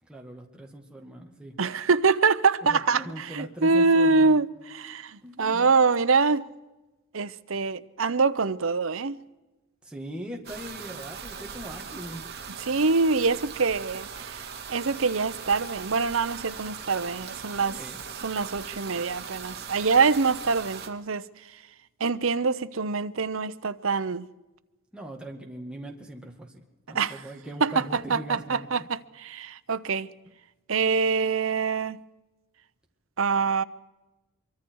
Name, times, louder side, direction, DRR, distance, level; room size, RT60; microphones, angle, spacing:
voice 1, 0.1-1.5 2.6-4.4 5.2-5.7 9.8-12.2 17.7-18.1 24.9-26.6 26.9-28.7, right 1 dB, 5° right, 2.1 m, -40 dB
voice 2, 1.6-6.4 7.1-9.2 12.6-17.8 18.2-21.3 22.0-24.3 26.9-27.2 27.6-30.1 30.7-32.0 33.2-33.6, right 4 dB, 65° right, 0.8 m, -25 dB
sound 1, 10.4-20.9, right 6 dB, 50° right, 2.3 m, -40 dB
24.5 x 24.0 x 4.7 m
head